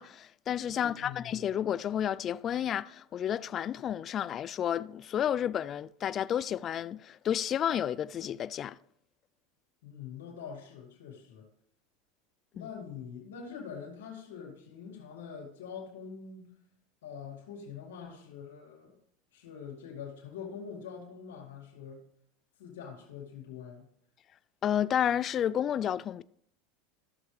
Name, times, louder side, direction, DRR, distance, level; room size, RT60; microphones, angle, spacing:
voice 1, 0.0-8.8 12.6-12.7 24.6-26.2, left 9 dB, 35° left, 0.3 m, -31 dB
voice 2, 0.7-1.4 9.8-11.5 12.5-16.5 17.0-19.0 19.3-22.1 22.6-23.9, left 6 dB, 90° left, 2.2 m, -44 dB
14.5 x 7.0 x 3.3 m
supercardioid pair, 125°, 0 cm